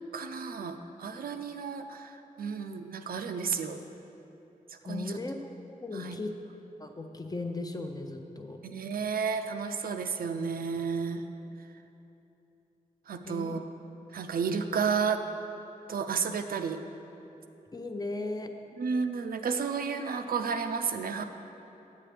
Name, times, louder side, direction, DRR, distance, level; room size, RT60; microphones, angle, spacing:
voice 1, 0.1-3.8 4.8-5.2 5.9-6.2 8.6-11.2 13.1-13.6 14.1-15.2 15.9-16.8 18.8-21.2, right 5 dB, 80° right, 7 dB, 0.4 m, -32 dB
voice 2, 4.8-6.3 6.8-8.6 13.2-13.6 17.7-18.5, left 2 dB, 25° left, 5 dB, 0.5 m, -37 dB
8.6 x 7.5 x 3.3 m, 3.0 s
wide cardioid pair, 105°, 15 cm